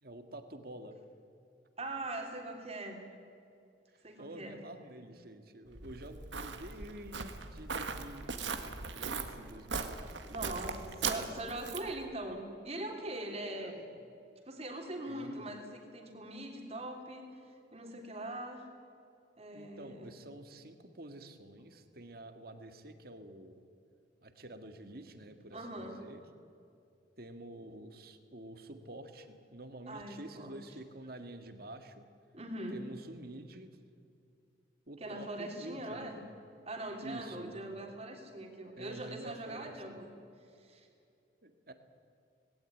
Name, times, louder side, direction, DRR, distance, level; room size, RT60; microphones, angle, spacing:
voice 1, 0.0-1.0 3.9-8.3 8.9-10.4 13.6-13.7 15.1-15.4 19.5-23.6 24.2-26.2 27.2-32.1 32.7-33.8 34.9-36.3 37.0-37.7 38.8-39.7 41.4-41.7, right 1 dB, 55° right, 8 dB, 1.9 m, -48 dB
voice 2, 1.8-3.1 4.0-4.5 10.3-13.9 14.4-18.7 19.4-20.2 25.5-26.0 29.9-30.6 32.3-32.8 35.0-36.2 36.7-40.1 40.5-40.9, right 1 dB, 35° right, 3 dB, 3.3 m, -42 dB
Walk footsteps, 5.7-12.0, right 5 dB, 85° right, 1.7 m, -39 dB
19.5 x 17.0 x 10.0 m, 2.5 s
head